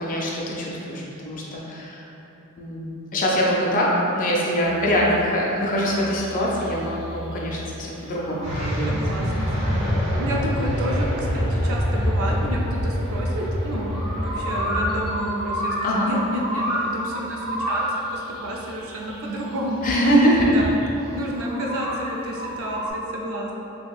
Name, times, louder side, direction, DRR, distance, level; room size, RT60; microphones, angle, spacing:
voice 1, 0.0-2.0 2.6-9.0 15.8-16.1 19.8-20.6, equal, 40° left, -3 dB, 0.4 m, -23 dB
sound 1, 4.6-22.9, equal, 85° right, 1.3 m, -33 dB
sound 2, 8.4-15.1, equal, 30° right, 0.7 m, -25 dB
voice 2, 8.9-9.9 10.2-17.8 18.1-19.9 20.4-20.8 21.1-23.5, equal, 65° right, -2 dB, 0.4 m, -30 dB
3.2 x 2.7 x 2.3 m, 3.0 s
head